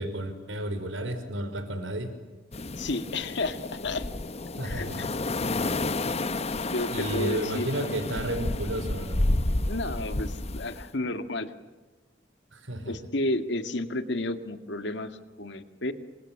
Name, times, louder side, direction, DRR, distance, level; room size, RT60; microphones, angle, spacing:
voice 1, 0.0-2.1 4.6-5.1 6.9-9.2 12.5-13.0, right 1 dB, 85° right, 9 dB, 4.9 m, -32 dB
sound 1, 2.5-10.9, left 2 dB, 35° left, 0.9 m, -31 dB
voice 2, 2.8-4.1 4.6-4.9 6.7-7.7 9.7-11.5 12.9-15.9, left 2 dB, 65° left, 9 dB, 2.1 m, -31 dB
28.5 x 25.5 x 7.3 m, 1.3 s
head